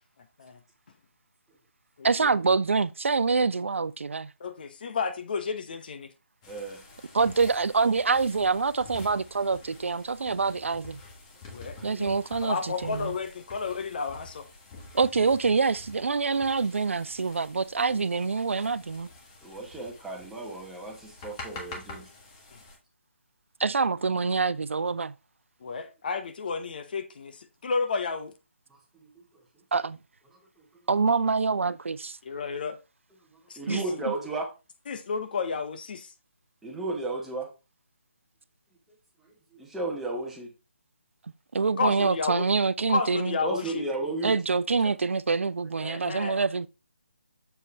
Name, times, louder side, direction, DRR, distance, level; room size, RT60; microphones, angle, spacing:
voice 1, 2.0-4.3 7.1-11.0 11.8-13.2 14.9-19.1 23.6-25.1 29.7-30.0 30.9-32.2 33.7-34.1 41.5-43.4 44.2-46.7, right 4 dB, 75° right, 0.3 m, -26 dB
voice 2, 4.4-6.1 11.5-12.1 12.4-14.5 25.6-27.4 27.6-28.3 32.2-32.8 33.5-33.8 34.9-36.1 41.8-42.4 42.9-43.8 45.8-46.4, left 5 dB, 45° left, 0.8 m, -31 dB
sound 1, 6.4-22.8, left 3 dB, 25° left, 1.5 m, -47 dB
voice 3, 6.5-6.8 11.5-12.1 19.4-22.1 25.8-25.9 28.7-29.2 30.3-30.9 33.3-34.5 36.6-37.5 38.9-40.5 43.4-44.4 44.8-44.9, right 2 dB, 5° right, 1.2 m, -35 dB
6.9 x 4.3 x 3.4 m
figure-of-eight pair, 150°, 7 cm